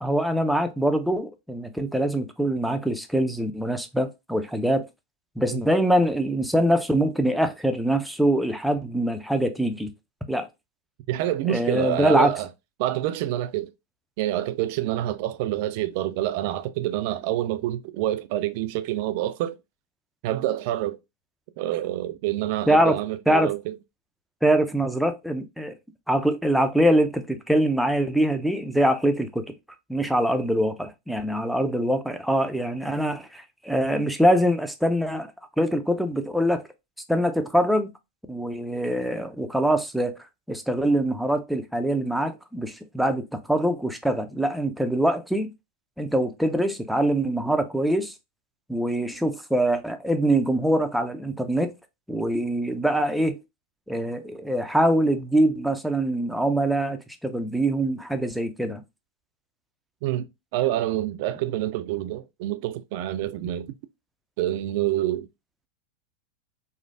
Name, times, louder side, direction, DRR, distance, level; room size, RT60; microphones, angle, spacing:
voice 1, 0.0-4.8 5.4-9.9 10.3-10.5 11.5-12.3 22.7-23.0 23.3-23.5 24.4-25.7 26.1-29.4 29.9-35.3 35.6-36.6 37.1-37.9 38.3-40.1 40.5-45.5 46.0-48.1 48.7-51.7 52.1-53.4 53.9-58.8, right 1 dB, ahead, 0.5 m, -23 dB
voice 2, 11.1-12.5 12.8-13.7 14.2-19.6 20.2-21.0 21.6-23.7 60.0-60.3 60.5-63.7 64.4-65.3, right 13 dB, 60° right, 0.3 m, -27 dB
3.1 x 2.0 x 2.6 m
hypercardioid pair, 105°, 0 cm